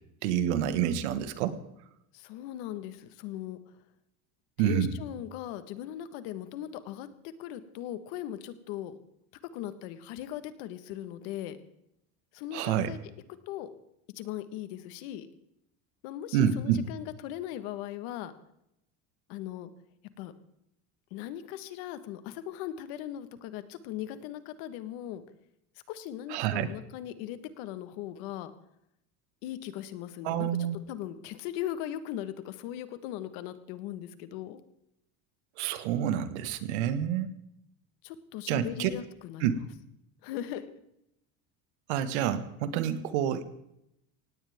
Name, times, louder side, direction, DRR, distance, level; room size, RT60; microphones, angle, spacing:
voice 1, 0.2-1.6 4.6-4.9 12.5-12.9 16.3-16.8 26.3-26.7 30.2-30.8 35.6-37.3 38.5-38.9 39.4-39.5 41.9-43.4, right 9 dB, 85° right, 11 dB, 1.7 m, -28 dB
voice 2, 2.1-3.6 4.6-7.1 7.4-8.9 9.5-11.6 12.3-13.0 13.5-13.7 14.1-15.3 16.0-18.3 19.3-19.7 20.2-20.3 21.1-25.2 25.9-28.5 29.4-34.6 38.0-39.6 40.2-40.7, left 12 dB, 60° left, 12 dB, 1.4 m, -39 dB
18.0 x 17.0 x 3.6 m, 0.81 s
cardioid pair, 180°, 33 cm